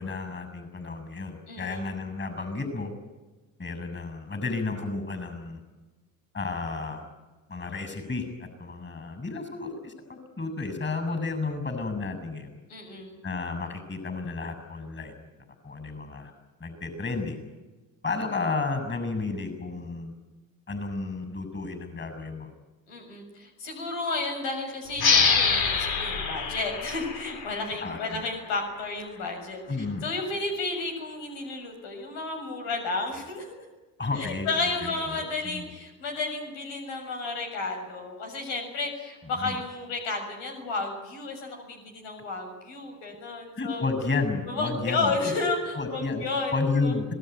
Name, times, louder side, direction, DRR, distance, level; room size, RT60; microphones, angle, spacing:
voice 1, 0.0-2.9 3.6-5.6 6.3-7.0 7.5-12.5 13.2-15.1 15.6-16.3 16.6-17.4 18.0-20.1 20.7-22.5 27.8-28.0 29.7-30.0 34.0-35.2 35.4-35.7 39.4-39.6 43.6-45.2 45.8-46.2 46.5-47.1, left 3 dB, 25° left, 9 dB, 6.9 m, -32 dB
voice 2, 1.5-1.9 12.7-13.2 22.9-29.6 30.0-33.6 34.2-43.9 44.5-46.9, left 3 dB, 80° left, 3 dB, 7.0 m, -32 dB
sound 1, 25.0-28.2, left 5 dB, 55° left, 3.6 m, -25 dB
26.5 x 18.5 x 9.4 m, 1.2 s
supercardioid pair, 80°, 44 cm